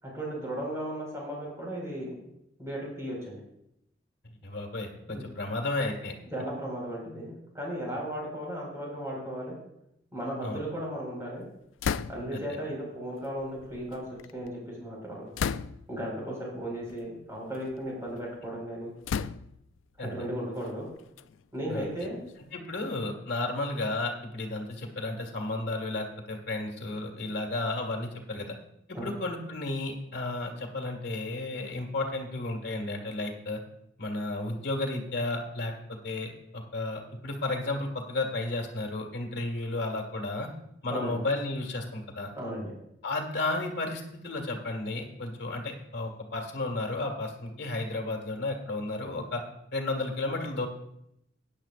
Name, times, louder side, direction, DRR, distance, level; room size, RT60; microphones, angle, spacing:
voice 1, 0.0-2.2 2.6-3.4 6.3-9.6 10.1-11.5 12.1-14.0 14.3-15.3 15.9-18.9 20.0-20.9 21.5-22.2 28.9-29.1 40.9-41.2 42.3-42.7, equal, 15° right, -3 dB, 4.7 m, -35 dB
voice 2, 4.4-6.1 10.4-10.6 12.3-12.6 20.0-20.1 21.7-21.9 22.5-28.5 28.9-33.6 34.0-40.5 40.8-42.3 43.0-49.4 49.7-50.7, left 2 dB, 60° left, 1 dB, 1.9 m, -33 dB
sound 1, 11.8-12.5 13.4-14.5 15.3-16.0 16.9-17.1 17.5-18.3 19.0-19.8 20.6-22.5, left 7 dB, 80° left, 0.4 m, -35 dB
16.5 x 10.0 x 2.5 m, 0.78 s
head